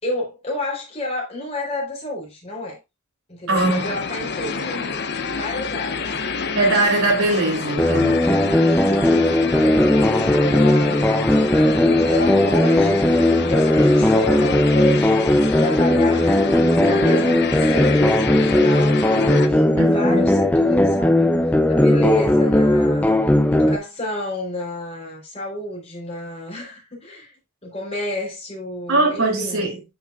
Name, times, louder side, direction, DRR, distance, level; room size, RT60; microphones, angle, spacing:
voice 1, 0.0-2.8 3.3-5.0 5.3-6.1 9.7-13.0 13.5-16.3 16.7-21.3 21.7-23.2 23.5-27.3 27.6-29.7, left 1 dB, 30° left, 3.9 m, -30 dB
sound 1, 3.5-19.5, left 4 dB, 50° left, 0.9 m, -28 dB
voice 2, 3.5-4.0 6.5-8.2 19.8-20.3 28.9-29.8, right 2 dB, 75° right, 3.1 m, -21 dB
sound 2, 7.8-23.8, left 1 dB, 5° left, 0.6 m, -17 dB
10.0 x 6.1 x 2.5 m
head